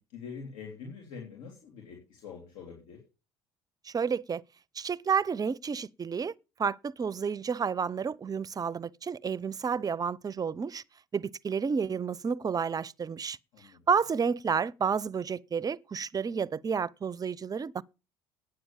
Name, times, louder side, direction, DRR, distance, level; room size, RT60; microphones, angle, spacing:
voice 1, 0.1-3.0 13.5-13.8, left 5 dB, 70° left, 3.5 m, -44 dB
voice 2, 3.9-4.4 4.8-6.3 6.6-10.8 11.1-13.4 13.9-17.8, right 6 dB, 30° right, 0.6 m, -30 dB
9.4 x 7.9 x 7.2 m
hypercardioid pair, 70°, 13 cm